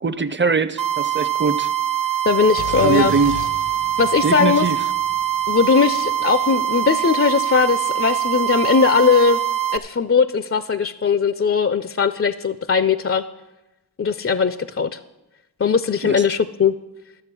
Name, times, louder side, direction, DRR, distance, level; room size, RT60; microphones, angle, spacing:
voice 1, 0.0-1.7 2.8-3.4 4.2-4.8 16.0-16.2, right 4 dB, 30° right, 14 dB, 0.6 m, -21 dB
sound 1, 0.8-9.8, right 11 dB, 50° right, 0.9 m, -23 dB
voice 2, 2.3-3.1 4.0-4.7 5.5-9.4 9.7-13.2 14.0-15.0 15.6-16.7, left 5 dB, 35° left, 13 dB, 0.4 m, -19 dB
sound 2, 2.6-6.3, left 7 dB, 70° left, 0.8 m, -35 dB
12.5 x 7.1 x 6.1 m, 0.99 s
wide cardioid pair, 55°, 41 cm